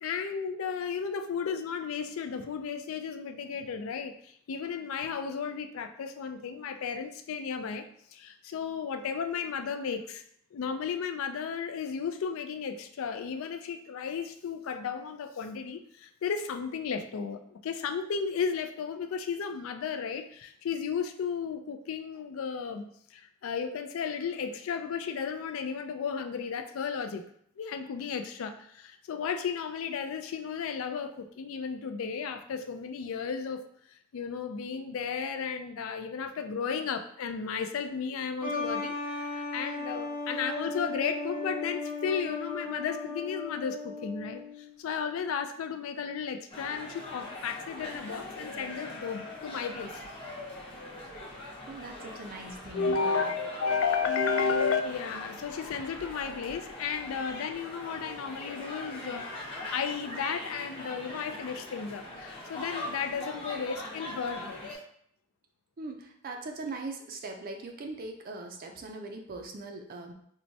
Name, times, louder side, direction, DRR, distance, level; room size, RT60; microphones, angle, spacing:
voice 1, 0.0-10.2 10.5-27.2 27.6-33.6 34.1-50.0 52.7-64.8, left 6 dB, 70° left, 7 dB, 0.3 m, -34 dB
sound 1, 38.4-44.7, left 3 dB, 10° right, 0.8 m, -36 dB
sound 2, 46.5-64.7, left 1 dB, 25° left, 0.8 m, -42 dB
voice 2, 51.7-53.3 65.8-70.1, right 3 dB, 45° right, 3 dB, 0.4 m, -40 dB
4.5 x 2.1 x 2.7 m, 0.67 s
head